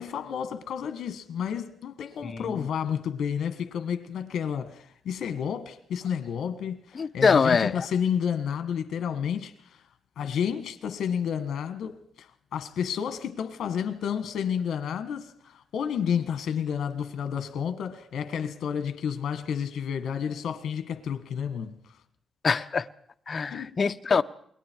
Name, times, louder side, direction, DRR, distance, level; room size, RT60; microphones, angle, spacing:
voice 1, 0.0-9.9 10.2-21.8 23.5-23.7, left 8 dB, 80° left, 1.7 m, -31 dB
voice 2, 7.0-7.9 22.4-22.9 23.3-24.2, left 5 dB, 40° left, 0.9 m, -23 dB
28.5 x 22.0 x 4.7 m
cardioid pair, 105°, 0 cm